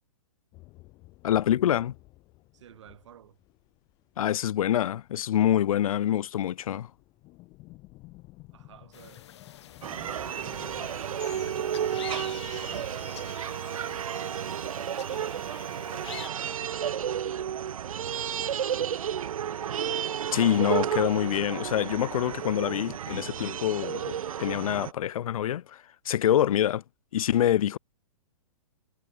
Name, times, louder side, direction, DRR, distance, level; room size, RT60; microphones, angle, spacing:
sound 1, 0.5-5.9 6.2-13.6, left 21 dB, 20° left, 1.5 m, -54 dB
voice 1, 1.2-1.9 4.2-6.9 20.3-26.8 27.1-27.8, left 11 dB, 75° left, 0.4 m, -26 dB
voice 2, 2.5-3.4 8.5-9.3 10.0-15.3 15.9-19.8 26.4-26.5, right 10 dB, 55° right, 3.0 m, -54 dB
sound 2, 8.9-16.3, left 11 dB, 50° left, 0.9 m, -46 dB
sound 3, 9.8-24.9, right 9 dB, 70° right, 1.1 m, -32 dB
hypercardioid pair, 165°, 18 cm